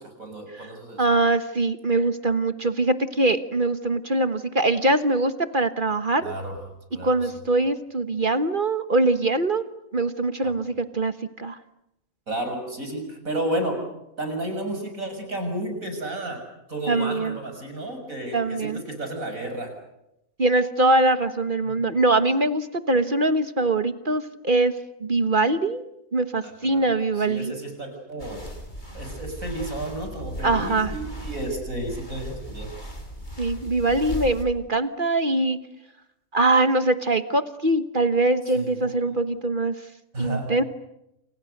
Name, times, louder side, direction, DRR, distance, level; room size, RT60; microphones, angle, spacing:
voice 1, 0.0-1.0 6.2-6.5 6.9-7.1 10.4-10.5 12.3-13.8 14.2-16.4 16.7-18.7 19.0-19.7 21.6-21.8 26.4-26.9 27.3-28.5 28.9-32.7 38.5-38.7 40.1-40.5, right 1 dB, 70° right, 4 dB, 7.0 m, -32 dB
voice 2, 1.0-6.3 7.0-11.6 16.9-17.4 18.3-18.8 20.4-24.7 25.0-25.8 26.1-27.5 30.4-30.9 33.4-35.6 36.3-39.7 40.2-40.6, right 2 dB, 35° right, 10 dB, 1.4 m, -23 dB
sound 1, 28.2-34.5, equal, 30° left, 5.1 m, -37 dB
29.0 x 29.0 x 6.6 m, 0.86 s
omnidirectional pair, 1.5 m